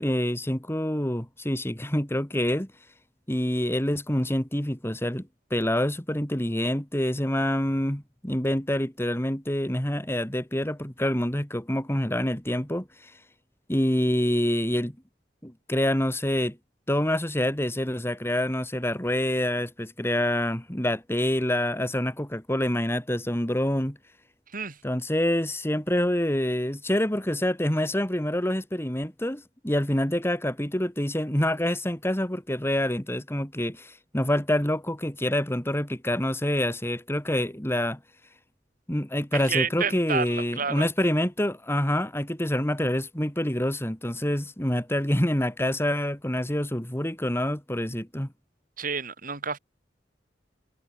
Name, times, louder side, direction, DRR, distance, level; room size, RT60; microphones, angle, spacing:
voice 1, 0.0-2.7 3.3-13.1 13.7-14.9 15.4-16.6 16.9-24.0 24.8-38.0 38.9-48.3, left 1 dB, 15° left, 2.8 m, -26 dB
voice 2, 39.3-40.9 48.8-49.6, right 6 dB, 50° right, 7.7 m, -30 dB
head